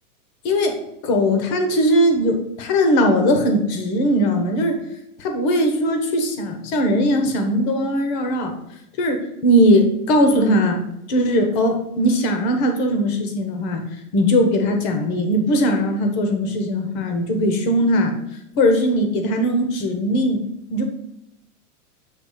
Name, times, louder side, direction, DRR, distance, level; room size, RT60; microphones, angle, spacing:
voice 1, 0.4-0.8 1.0-4.8 5.2-8.5 9.0-10.8 11.1-13.9 14.1-18.1 18.6-20.4 20.7-20.9, equal, 30° left, 4 dB, 0.9 m, -19 dB
7.3 x 3.2 x 4.9 m, 0.84 s
supercardioid pair, 165°, 44 cm